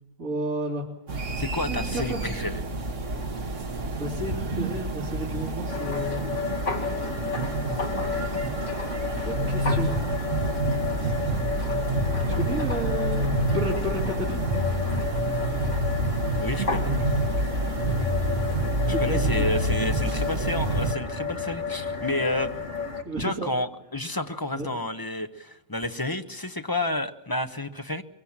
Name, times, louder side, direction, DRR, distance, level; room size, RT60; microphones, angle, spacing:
voice 1, 0.2-0.9 1.6-2.2 3.3-3.7 4.0-7.3 7.9-8.6 9.2-10.1 11.6-11.7 12.3-14.5 18.9-19.5 23.1-23.5 24.5-24.7, right 1 dB, 80° right, -4 dB, 3.7 m, -33 dB
sound 1, 1.1-20.9, right 1 dB, 65° right, 2.0 m, -28 dB
voice 2, 1.4-2.6 16.3-16.9 18.9-22.5 23.2-28.0, left 1 dB, 15° left, 8 dB, 1.0 m, -30 dB
sound 2, 5.7-23.0, left 5 dB, 60° left, 2.7 m, -32 dB
24.0 x 23.0 x 7.3 m, 0.81 s
omnidirectional pair, 1.4 m